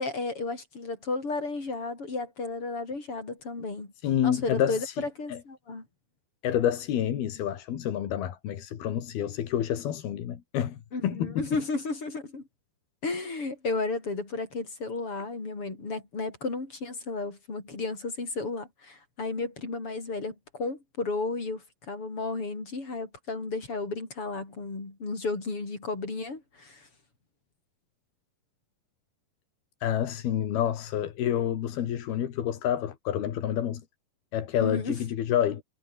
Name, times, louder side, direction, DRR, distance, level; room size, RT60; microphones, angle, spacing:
voice 1, 0.0-3.9 4.2-5.9 10.9-12.5 13.0-26.9 34.6-35.0, left 3 dB, 35° left, 6.6 m, -33 dB
voice 2, 4.0-5.0 5.3-5.4 6.4-11.4 29.8-33.8 34.3-35.6, left 10 dB, 80° left, 4.1 m, -28 dB
omnidirectional pair, 4.4 m